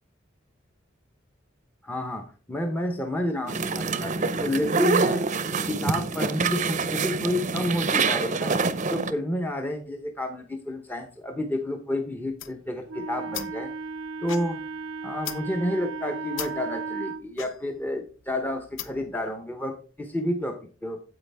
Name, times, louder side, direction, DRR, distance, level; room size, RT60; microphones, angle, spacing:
voice 1, 1.8-5.3 5.7-8.6 8.9-13.7 14.2-14.6 15.0-21.0, left 1 dB, 10° left, 4 dB, 0.8 m, -30 dB
sound 1, 3.5-9.1, right 4 dB, 40° right, 0.7 m, -26 dB
sound 2, 12.2-19.2, left 10 dB, 75° left, 0.8 m, -41 dB
Wind instrument woodwind instrument, 12.9-17.2, right 4 dB, 75° right, 0.5 m, -35 dB
9.6 x 8.1 x 3.4 m, 0.38 s
head